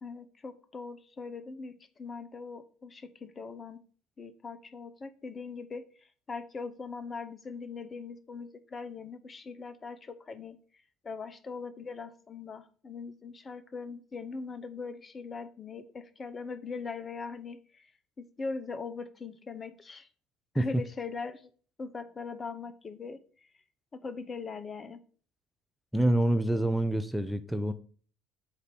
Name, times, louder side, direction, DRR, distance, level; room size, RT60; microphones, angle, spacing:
voice 1, 0.0-3.8 4.2-5.9 6.3-10.6 11.0-17.9 18.2-20.1 20.5-21.5 21.8-23.2 23.9-25.0, left 4 dB, 30° left, 0.7 m, -41 dB
voice 2, 25.9-27.7, right 1 dB, ahead, 0.6 m, -26 dB
8.1 x 2.7 x 6.0 m
hypercardioid pair, 70°, 0 cm